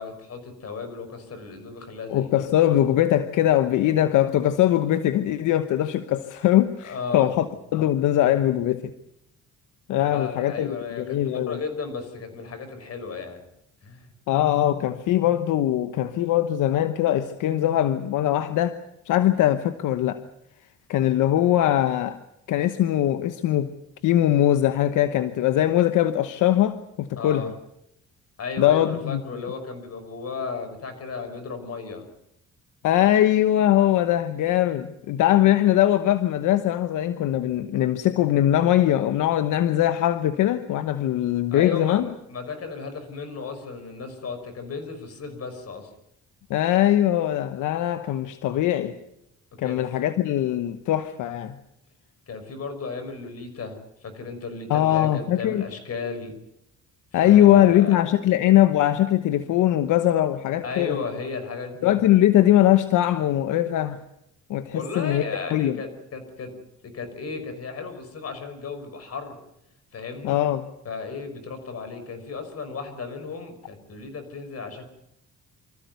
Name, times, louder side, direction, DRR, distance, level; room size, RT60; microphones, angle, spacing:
voice 1, 0.0-2.5 6.8-7.3 10.0-13.4 13.8-14.1 27.2-27.5 28.4-32.0 41.5-45.9 49.6-49.9 52.3-56.4 57.1-58.0 60.6-61.9 64.7-66.5 66.8-69.4 69.9-70.4 70.8-74.9, left 4 dB, 55° left, 8 dB, 5.7 m, -35 dB
voice 2, 2.1-7.5 7.7-8.9 9.9-11.6 14.3-18.8 19.1-20.2 20.9-22.2 22.5-23.7 24.0-27.5 28.6-29.2 32.8-42.1 46.5-48.9 49.6-51.6 54.7-55.6 57.1-61.0 61.8-64.0 64.5-65.2 65.5-65.8 70.2-70.7, left 12 dB, 85° left, 10 dB, 1.1 m, -21 dB
25.5 x 14.5 x 9.4 m, 0.81 s
cardioid pair, 90°, 30 cm